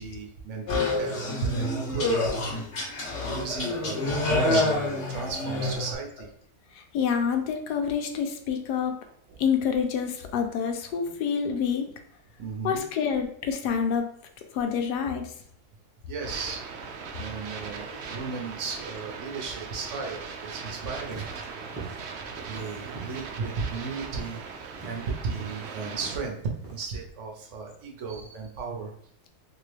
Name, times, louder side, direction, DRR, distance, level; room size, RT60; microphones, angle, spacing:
voice 1, 0.0-2.4 3.2-6.3 9.3-9.4 12.4-12.8 16.1-16.6 17.2-21.3 22.5-26.4 26.7-28.9, right 4 dB, 60° right, 1 dB, 0.9 m, -35 dB
sound 1, 0.7-5.9, left 2 dB, 55° left, 1.1 m, -27 dB
voice 2, 6.8-9.0 9.4-11.9 12.6-14.0 14.5-15.3, left 7 dB, 85° left, 5 dB, 1.2 m, -27 dB
sound 2, 16.2-26.2, right 5 dB, 85° right, 0.5 m, -39 dB
sound 3, 21.1-26.9, right 4 dB, 15° right, 0.5 m, -43 dB
3.0 x 2.9 x 3.2 m, 0.63 s
omnidirectional pair, 1.7 m